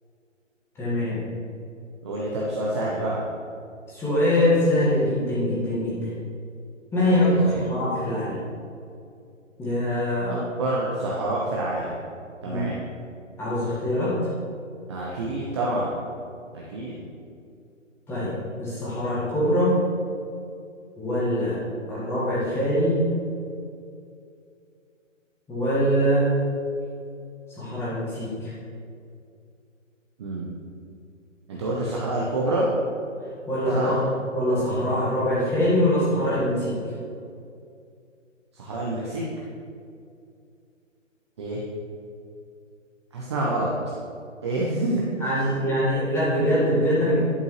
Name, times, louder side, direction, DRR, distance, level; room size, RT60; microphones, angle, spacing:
voice 1, 0.8-1.2 3.9-6.1 6.9-8.4 9.6-10.3 12.4-12.6 13.4-14.2 18.1-19.8 21.0-21.6 21.9-23.0 25.5-26.3 27.6-28.5 33.5-33.9 34.3-36.7 45.2-47.2, equal, 5° left, -9 dB, 1.6 m, -23 dB
voice 2, 2.0-3.2 7.1-7.6 10.3-11.9 12.4-12.8 14.9-15.9 16.7-17.0 30.2-30.5 31.5-32.6 33.7-33.9 38.6-39.2 41.4-41.6 43.1-43.7 44.4-45.3, right 2 dB, 20° right, -5 dB, 0.6 m, -27 dB
11.0 x 5.3 x 3.2 m, 2.4 s
hypercardioid pair, 150°, 39 cm